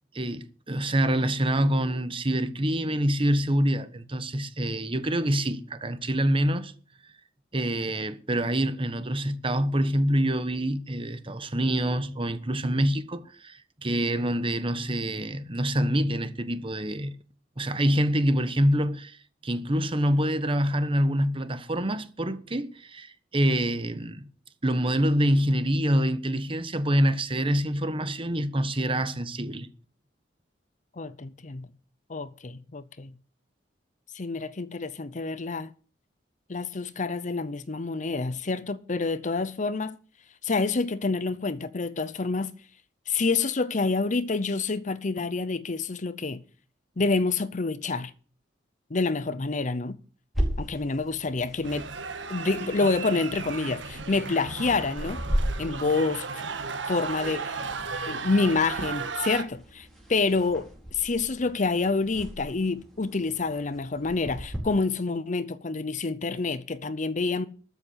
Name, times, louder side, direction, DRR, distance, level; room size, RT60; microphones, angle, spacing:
voice 1, 0.1-6.7 7.5-17.1 17.6-24.2 24.6-29.7, equal, 30° right, 1.2 m, -26 dB
voice 2, 31.0-31.7 32.1-33.1 34.1-35.7 36.5-40.0 40.4-42.5 43.1-46.4 47.0-48.1 48.9-50.0 50.6-51.9 52.3-55.2 55.6-56.4 56.9-57.6 58.1-67.5, left 3 dB, 40° left, 0.7 m, -28 dB
sound 1, 50.3-64.6, equal, ahead, 4.7 m, -37 dB
sound 2, 51.6-59.4, right 4 dB, 80° right, 1.6 m, -35 dB
13.5 x 7.1 x 8.1 m
head